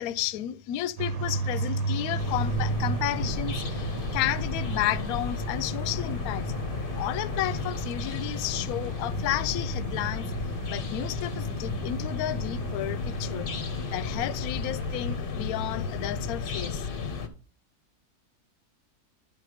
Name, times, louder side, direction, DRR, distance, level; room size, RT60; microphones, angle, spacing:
voice 1, 0.0-3.8 4.1-6.5 6.9-10.3 10.7-13.5 13.9-16.8, left 13 dB, 70° left, 1.0 m, -32 dB
sound 1, 1.0-15.2, right 4 dB, 65° right, 1.3 m, -34 dB
sound 2, 2.2-17.3, left 5 dB, 45° left, 0.7 m, -34 dB
10.5 x 3.8 x 4.9 m
omnidirectional pair, 1.7 m